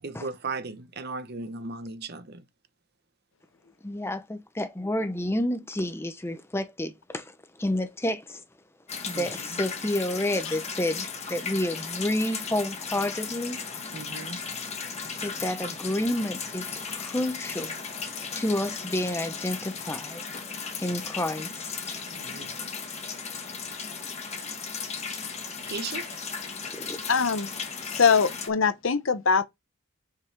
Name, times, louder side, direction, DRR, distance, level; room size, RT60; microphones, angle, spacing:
voice 1, 0.0-2.4 9.1-9.6 13.9-14.4 22.2-22.5 24.4-24.5 25.6-26.1, right 4 dB, 45° right, 0.8 m, -37 dB
voice 2, 3.8-8.4 9.0-13.6 15.2-17.7 18.4-20.2 20.8-22.0 26.7-27.0, left 1 dB, 10° left, 0.7 m, -30 dB
sound 1, 8.9-28.5, left 5 dB, 30° left, 1.1 m, -36 dB
voice 3, 27.1-27.5 27.9-29.5, left 5 dB, 60° left, 0.7 m, -22 dB
5.5 x 4.8 x 4.6 m
head